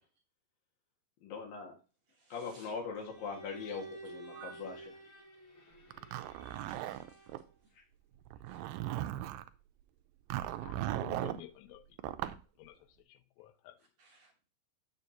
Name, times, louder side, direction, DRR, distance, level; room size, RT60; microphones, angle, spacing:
voice 1, 1.2-1.8 2.3-4.8, left 5 dB, 70° left, 3.5 m, -41 dB
voice 2, 2.1-2.7 4.3-4.9 6.4-7.3 8.5-8.6 13.8-14.3, right 7 dB, 60° right, 2.0 m, -57 dB
Bowed string instrument, 3.0-7.5, right 2 dB, 45° left, 2.0 m, -52 dB
Zipper (clothing), 5.9-7.4 8.3-9.5 10.3-11.4 12.0-12.4, right 13 dB, 80° right, 2.1 m, -37 dB
voice 3, 10.6-11.9 12.6-12.8 13.1-13.8, left 15 dB, 85° left, 2.6 m, -51 dB
8.4 x 6.9 x 2.8 m
omnidirectional pair, 4.2 m